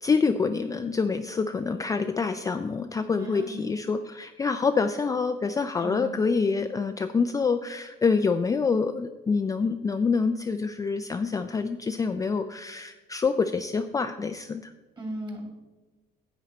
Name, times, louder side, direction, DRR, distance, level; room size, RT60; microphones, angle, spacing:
voice 1, 0.0-14.7, left 4 dB, 20° left, 8 dB, 0.4 m, -26 dB
voice 2, 3.2-3.6 5.8-6.1 15.0-15.5, right 1 dB, 25° right, 2 dB, 2.7 m, -36 dB
10.0 x 8.1 x 4.2 m, 1.2 s
cardioid pair, 110°, 17 cm